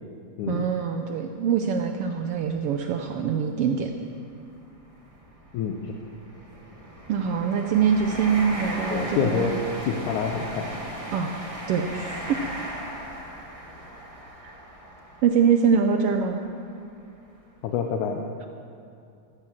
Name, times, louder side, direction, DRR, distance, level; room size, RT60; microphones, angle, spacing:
voice 1, 0.5-3.9 7.1-9.6 11.1-11.4 11.7-12.4 14.4-14.5 15.2-16.4, right 7 dB, 90° right, 5 dB, 1.3 m, -24 dB
sound 1, 0.6-0.7 1.3-1.4 2.6-2.7 2.9-3.1 3.8-16.5 17.1-17.3, right 1 dB, 20° right, 0.8 m, -37 dB
voice 2, 5.5-5.9 8.9-9.6 9.9-10.7 17.6-18.2, left 7 dB, 75° left, 3 dB, 2.3 m, -27 dB
14.0 x 13.0 x 7.4 m, 2.5 s
omnidirectional pair, 3.6 m